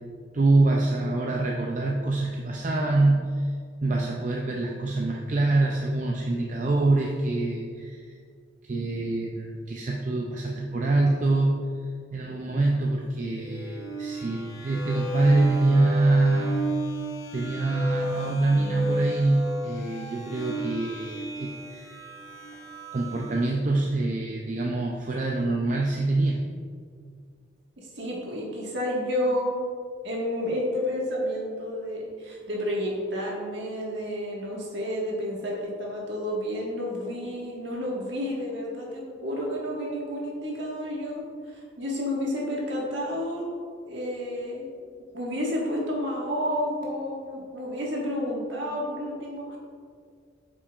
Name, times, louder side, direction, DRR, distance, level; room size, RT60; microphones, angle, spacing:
voice 1, 0.3-3.5 3.8-8.1 8.6-11.6 12.1-16.7 17.3-22.0 22.9-26.4, right 2 dB, 40° right, -1 dB, 0.4 m, -25 dB
sound 1, 13.4-23.6, right 1 dB, 85° left, 0.7 m, -34 dB
voice 2, 27.8-29.6 30.0-43.5 43.9-44.7 45.1-49.6, equal, 60° right, -3 dB, 1.6 m, -30 dB
8.1 x 6.0 x 2.4 m, 2.1 s
head